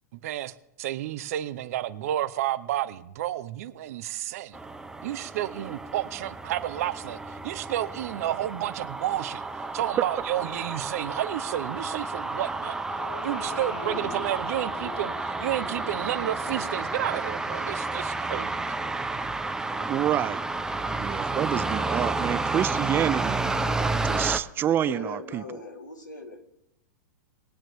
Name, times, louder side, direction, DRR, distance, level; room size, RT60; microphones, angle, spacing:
voice 1, 0.1-4.6 5.0-9.4 9.7-12.8 13.2-18.7, right 13 dB, 55° right, 0.8 m, -31 dB
sound 1, 4.5-24.4, right 3 dB, 5° right, 0.7 m, -31 dB
sound 2, 12.6-18.8, left 6 dB, 50° left, 2.8 m, -44 dB
voice 2, 19.9-20.4 21.0-23.6 24.0-25.4, right 11 dB, 20° right, 0.4 m, -28 dB
voice 3, 24.8-26.4, left 2 dB, 90° left, 2.5 m, -40 dB
21.5 x 8.8 x 3.2 m
figure-of-eight pair, 105°, 10 cm